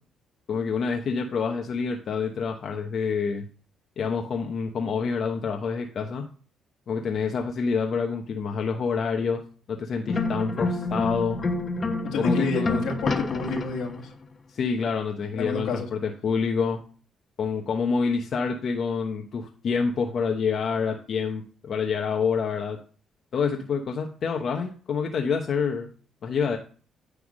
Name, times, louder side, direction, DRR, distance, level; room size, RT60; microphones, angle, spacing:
voice 1, 0.5-3.4 4.0-6.2 6.9-9.4 9.7-11.4 12.2-12.8 14.5-16.8 17.4-22.8 23.3-25.9 26.2-26.6, left 5 dB, 60° left, 3 dB, 1.0 m, -27 dB
sound 1, 10.1-14.1, left 3 dB, 35° left, 1.1 m, -28 dB
voice 2, 12.0-14.1 15.3-15.9, left 3 dB, 85° left, 1 dB, 1.9 m, -29 dB
9.7 x 3.5 x 6.3 m, 0.40 s
cardioid pair, 90°, 0 cm